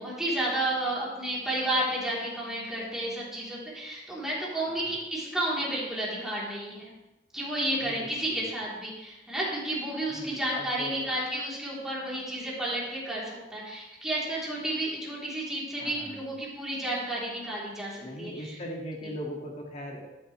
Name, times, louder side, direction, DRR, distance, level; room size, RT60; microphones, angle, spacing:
voice 1, 0.0-6.9 7.3-18.6, right 1 dB, 5° right, -7 dB, 3.7 m, -31 dB
voice 2, 7.8-8.4 10.1-11.1 15.8-16.2 18.0-20.1, equal, 40° left, -1 dB, 2.2 m, -40 dB
13.0 x 9.9 x 3.4 m, 1.0 s
head